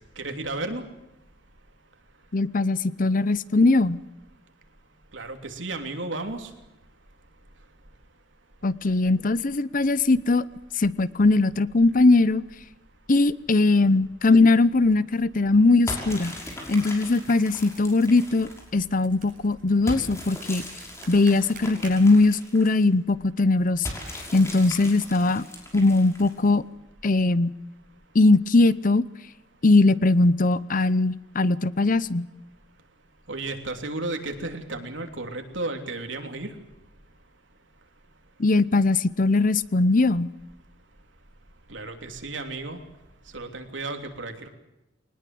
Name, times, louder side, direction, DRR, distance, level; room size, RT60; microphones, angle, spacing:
voice 1, 0.2-0.8 5.1-6.5 33.3-36.5 41.7-42.8 43.3-44.5, right 2 dB, 80° right, 5 dB, 3.2 m, -33 dB
voice 2, 2.3-4.0 8.6-10.4 10.8-12.4 13.1-16.4 16.7-20.6 21.1-23.9 24.3-25.4 25.7-26.6 27.0-27.5 28.1-29.0 29.6-32.3 38.4-40.3, left 3 dB, 45° left, 18 dB, 0.8 m, -20 dB
sound 1, 15.9-18.8 19.9-22.9 23.8-26.5, left 1 dB, 15° left, 5.9 m, -39 dB
sound 2, 15.9-22.0, right 4 dB, 45° right, 7.6 m, -51 dB
22.5 x 20.0 x 7.9 m, 0.94 s
head